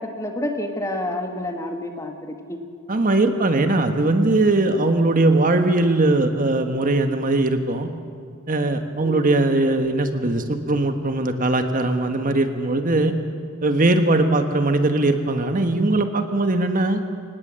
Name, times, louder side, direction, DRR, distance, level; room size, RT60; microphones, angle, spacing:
voice 1, 0.0-2.6 9.0-9.3, left 1 dB, 15° left, 4 dB, 1.8 m, -29 dB
voice 2, 2.9-7.9 8.5-13.1 13.6-17.0, right 2 dB, 40° right, 7 dB, 1.4 m, -20 dB
25.0 x 19.0 x 7.6 m, 2.2 s
head